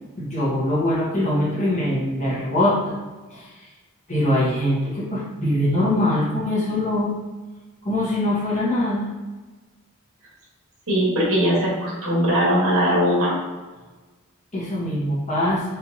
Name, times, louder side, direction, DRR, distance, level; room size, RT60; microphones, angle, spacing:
voice 1, 0.2-2.9 3.3-3.5 4.1-7.1 7.8-9.1 14.5-15.6, left 1 dB, 35° left, -6 dB, 1.2 m, -22 dB
voice 2, 10.9-13.4, equal, 70° right, -5 dB, 1.5 m, -20 dB
4.2 x 3.5 x 2.8 m, 1.2 s
head